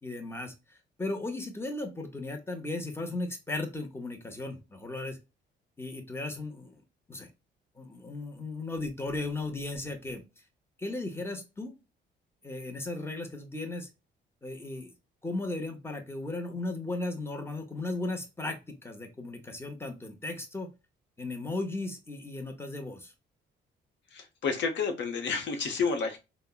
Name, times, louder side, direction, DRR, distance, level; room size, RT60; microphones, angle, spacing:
voice 1, 0.0-5.2 5.8-6.8 7.1-7.3 7.8-10.2 10.8-11.7 12.4-13.9 14.4-14.9 15.2-20.7 21.2-23.1, left 2 dB, 10° left, 5 dB, 0.7 m, -36 dB
voice 2, 24.1-26.2, left 5 dB, 65° left, 5 dB, 0.8 m, -30 dB
3.4 x 2.1 x 2.3 m, 0.26 s
cardioid pair, 90°, 20 cm